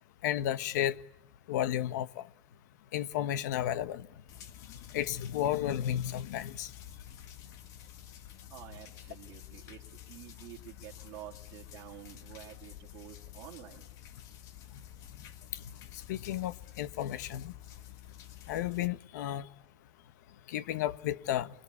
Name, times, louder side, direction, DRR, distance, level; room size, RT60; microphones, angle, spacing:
voice 1, 0.2-1.0 1.5-2.2 2.9-4.1 4.9-6.7 16.1-17.5 18.5-19.5 20.5-21.5, left 12 dB, 90° left, 1.3 m, -32 dB
sound 1, 4.3-18.9, left 11 dB, 40° left, 1.9 m, -50 dB
voice 2, 8.5-13.9, right 13 dB, 40° right, 3.0 m, -49 dB
29.0 x 23.5 x 8.6 m
supercardioid pair, 170°, 9 cm